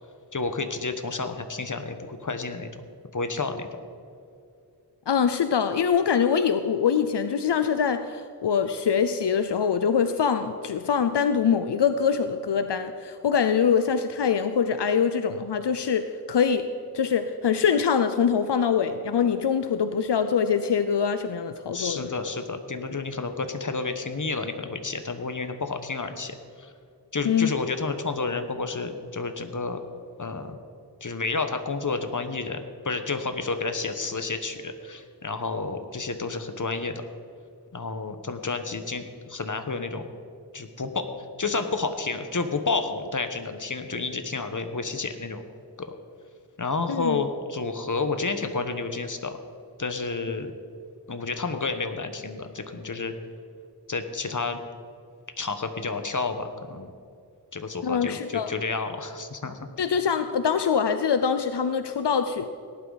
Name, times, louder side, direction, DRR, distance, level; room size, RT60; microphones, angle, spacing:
voice 1, 0.3-2.8 3.1-3.7 21.7-26.7 27.1-29.8 30.2-30.6 31.0-32.6 32.8-37.0 37.7-40.1 40.5-41.0 41.4-45.4 45.8-45.9 46.6-49.4 49.8-50.5 51.1-53.1 53.9-54.6 55.4-56.9 57.5-59.6, left 4 dB, 50° left, 7 dB, 1.3 m, -30 dB
voice 2, 5.1-16.7 16.9-22.2 27.2-27.5 46.9-47.2 50.3-50.4 57.8-58.5 59.8-62.5, left 7 dB, 80° left, 9 dB, 0.6 m, -24 dB
18.0 x 12.0 x 4.1 m, 2.4 s
wide cardioid pair, 55°, 40 cm